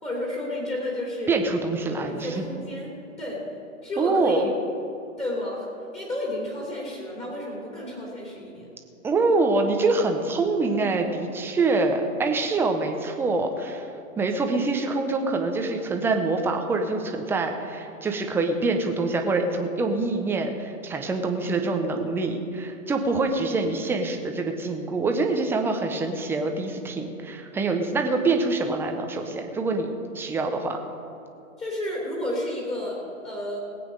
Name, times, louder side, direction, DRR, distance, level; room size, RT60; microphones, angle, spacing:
voice 1, 0.0-1.3 1.9-2.9 3.2-3.4 3.8-4.5 5.2-5.7 5.9-8.7 31.6-33.6, left 1 dB, 15° left, -4 dB, 3.1 m, -31 dB
voice 2, 1.3-2.4 4.0-4.5 9.0-13.9 14.2-30.8, right 3 dB, 5° right, 4 dB, 0.6 m, -25 dB
19.0 x 8.6 x 5.2 m, 2.9 s
hypercardioid pair, 135°, 41 cm